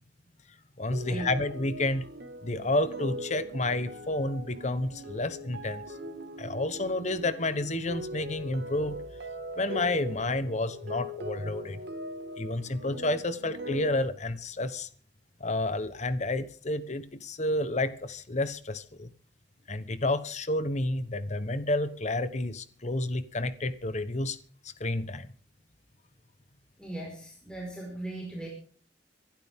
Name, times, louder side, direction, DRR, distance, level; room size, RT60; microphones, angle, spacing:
voice 1, 0.8-2.0 2.4-5.8 6.4-9.0 9.6-11.8 12.4-14.9 15.4-19.1 19.7-24.4 24.8-25.3, left 2 dB, 40° left, 13 dB, 1.2 m, -30 dB
sound 1, 0.9-14.0, equal, 65° right, 1.8 m, -41 dB
voice 2, 26.8-28.5, right 1 dB, 5° left, -3 dB, 5.0 m, -38 dB
25.0 x 12.0 x 3.7 m, 0.44 s
head